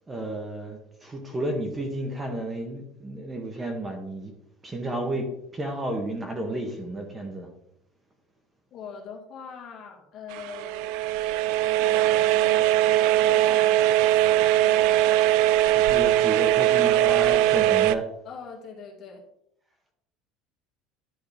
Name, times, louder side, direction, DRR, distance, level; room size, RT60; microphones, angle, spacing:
voice 1, 0.1-4.3 4.6-7.5 15.6-18.1, right 1 dB, 15° right, 3 dB, 1.0 m, -32 dB
voice 2, 8.7-10.9 11.8-12.7 13.2-14.9 16.8-17.4 18.2-19.2, left 6 dB, 40° left, 1 dB, 1.9 m, -42 dB
sound 1, 10.3-18.0, right 14 dB, 65° right, 0.4 m, -21 dB
10.5 x 3.5 x 5.0 m, 0.77 s
cardioid pair, 165°, 0 cm